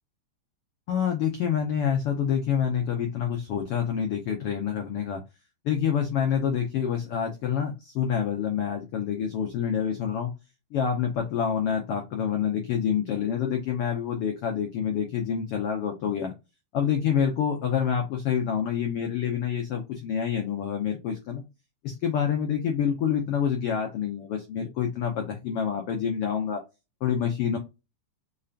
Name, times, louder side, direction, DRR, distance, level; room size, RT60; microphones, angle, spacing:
voice 1, 0.9-5.2 5.6-10.3 10.7-16.3 16.7-21.4 21.8-26.6 27.0-27.6, left 8 dB, 85° left, 2 dB, 1.2 m, -27 dB
5.4 x 3.3 x 2.4 m, 0.24 s
omnidirectional pair, 3.8 m